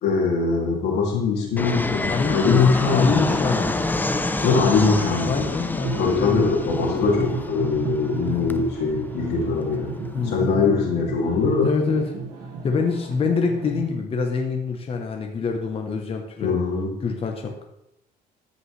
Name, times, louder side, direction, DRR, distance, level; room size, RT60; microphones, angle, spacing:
voice 1, 0.0-3.4 4.4-5.5 5.9-9.9 10.2-11.7 16.4-16.9, left 4 dB, 80° left, -2 dB, 2.7 m, -22 dB
Fixed-wing aircraft airplane, 1.6-10.6, left 2 dB, 10° left, 0.5 m, -28 dB
voice 2, 2.1-3.7 5.2-6.6 10.1-10.8 11.6-12.1 12.6-16.6 17.0-17.6, left 4 dB, 35° left, 3 dB, 1.0 m, -25 dB
sound 1, 3.6-13.9, right 4 dB, 80° right, 2.1 m, -34 dB
13.5 x 5.4 x 3.3 m, 0.81 s
cardioid pair, 110°, 17 cm